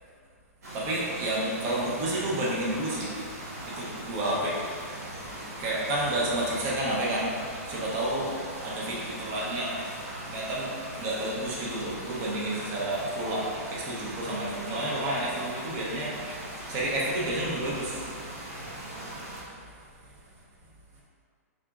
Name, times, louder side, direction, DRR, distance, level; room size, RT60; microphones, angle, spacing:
sound 1, 0.6-19.4, right 1 dB, 80° right, 1.3 m, -40 dB
voice 1, 0.7-3.1 3.8-4.6 5.6-7.3 7.7-8.3 8.6-9.8 10.3-10.7 11.0-16.1 16.7-18.0, right 1 dB, 30° right, -5 dB, 0.8 m, -30 dB
4.1 x 3.6 x 2.5 m, 2.1 s
hypercardioid pair, 155°, 8 cm